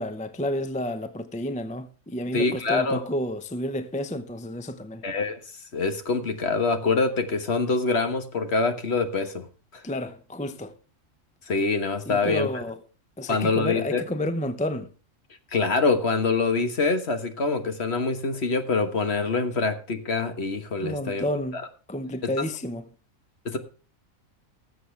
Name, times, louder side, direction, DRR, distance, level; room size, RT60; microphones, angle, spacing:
voice 1, 0.0-5.0 9.8-10.8 12.1-12.8 13.2-14.9 20.8-21.6 21.9-22.9, left 1 dB, 5° left, 0.6 m, -30 dB
voice 2, 2.3-3.0 5.0-9.5 9.7-9.8 11.5-12.6 13.3-14.0 15.5-21.3 21.5-21.6 23.4-23.6, left 4 dB, 55° left, 1.6 m, -25 dB
19.5 x 7.7 x 3.3 m
omnidirectional pair, 1.4 m